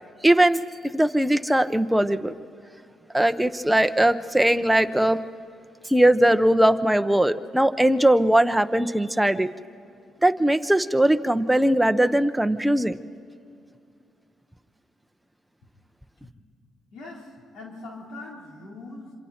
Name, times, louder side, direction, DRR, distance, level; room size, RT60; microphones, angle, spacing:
voice 1, 0.2-0.6 0.9-2.3 3.1-5.2 5.9-9.5 10.2-13.0, right 1 dB, 5° right, 9 dB, 0.8 m, -20 dB
voice 2, 16.9-19.2, left 2 dB, 85° left, -2 dB, 4.1 m, -41 dB
27.0 x 25.5 x 4.4 m, 2.5 s
cardioid pair, 90°, 0 cm